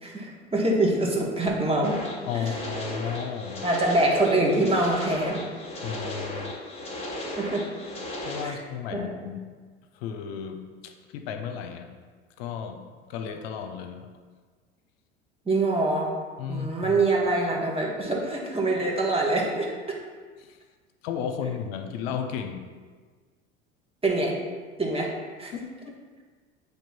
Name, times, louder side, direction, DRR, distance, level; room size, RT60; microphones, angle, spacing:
voice 1, 0.0-2.0 3.6-5.5 7.4-7.7 8.4-8.6 8.9-9.1 15.4-16.1 16.5-20.0 24.0-24.3 24.8-25.1 25.4-25.5, right 2 dB, 15° right, -2 dB, 1.6 m, -24 dB
sound 1, 1.8-8.4, left 1 dB, 20° left, 1.7 m, -35 dB
voice 2, 2.3-3.6 5.8-6.6 8.2-9.5 9.9-11.9 12.4-12.8 13.1-14.1 16.4-16.9 20.4-20.6 21.0-22.6 25.5-25.7, left 7 dB, 65° left, 6 dB, 0.7 m, -34 dB
8.3 x 3.3 x 4.4 m, 1.5 s
hypercardioid pair, 75°, 33 cm